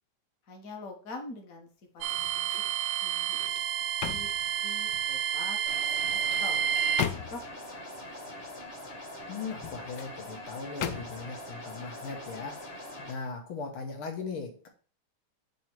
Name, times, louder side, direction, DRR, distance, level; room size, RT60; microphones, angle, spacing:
voice 1, 0.4-1.7 1.9-2.4 3.0-3.4 4.0-4.3 4.6-5.6 5.9-7.9 8.2-8.5, left 3 dB, 45° left, 2 dB, 1.6 m, -45 dB
sound 1, 2.0-2.8 3.2-5.1 5.9-7.6 9.4-10.1 10.8-11.4 11.9-12.1, left 9 dB, 70° left, 1.1 m, -38 dB
sound 2, 2.0-7.0, right 9 dB, 70° right, 1.0 m, -30 dB
sound 3, 5.7-13.1, left 1 dB, 30° left, 1.6 m, -43 dB
voice 2, 9.3-14.7, left 4 dB, 90° left, 3 dB, 2.2 m, -39 dB
9.1 x 3.1 x 4.5 m, 0.40 s
omnidirectional pair, 2.3 m